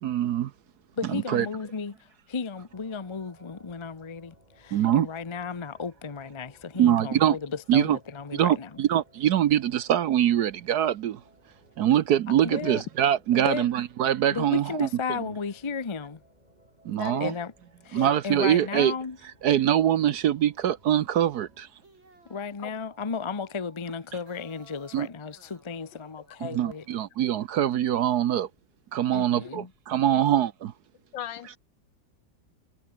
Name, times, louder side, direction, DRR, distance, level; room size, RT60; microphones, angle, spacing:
voice 1, 0.0-0.5 1.1-1.5 4.7-5.1 6.8-7.4 7.7-8.0 8.3-11.2 11.8-14.9 16.8-17.3 17.9-18.9 19.4-21.7 24.9-25.1 26.4-28.5 28.9-30.7, right 11 dB, 65° right, 1.2 m, -23 dB
voice 2, 1.0-8.8 12.3-12.8 13.3-13.7 14.3-16.2 17.2-17.5 17.8-19.2 22.3-26.9 29.1-29.7, left 5 dB, 30° left, 0.5 m, -34 dB
sound 1, 2.7-21.6, right 1 dB, 20° right, 7.7 m, -60 dB
voice 3, 16.9-17.2 17.9-18.2 22.6-22.7 30.1-30.2 31.1-31.6, left 10 dB, 75° left, 1.7 m, -37 dB
sound 2, 21.6-27.1, right 2 dB, 90° right, 7.9 m, -58 dB
omnidirectional pair, 2.1 m